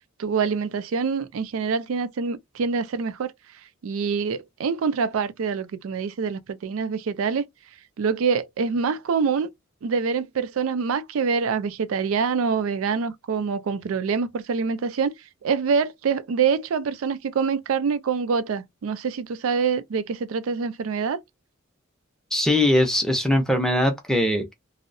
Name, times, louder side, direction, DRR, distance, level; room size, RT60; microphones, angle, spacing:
voice 1, 0.2-3.3 3.8-7.5 8.0-9.5 9.8-15.1 15.4-21.2, right 5 dB, 75° right, 0.4 m, -25 dB
voice 2, 22.3-24.5, left 1 dB, 5° left, 0.5 m, -21 dB
2.6 x 2.0 x 2.5 m
head